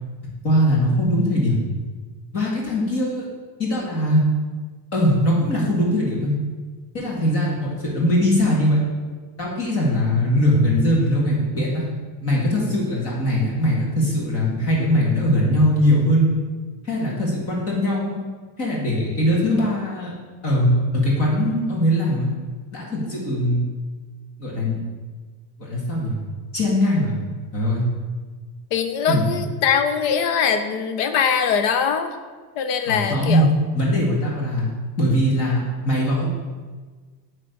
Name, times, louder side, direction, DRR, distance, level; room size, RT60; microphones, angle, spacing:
voice 1, 0.4-1.6 2.3-3.3 3.6-4.2 4.9-6.3 6.9-8.8 9.4-11.9 12.2-16.3 16.8-18.2 18.6-20.1 20.4-22.3 22.7-23.7 24.4-24.8 25.6-26.2 26.5-27.1 27.5-27.8 29.1-29.3 32.9-33.5 33.7-34.7 35.0-36.3, equal, 30° left, -4 dB, 1.8 m, -21 dB
voice 2, 28.7-32.2 32.6-33.5, left 7 dB, 65° left, 8 dB, 0.8 m, -22 dB
8.6 x 3.3 x 5.1 m, 1.4 s
cardioid pair, 180°, 46 cm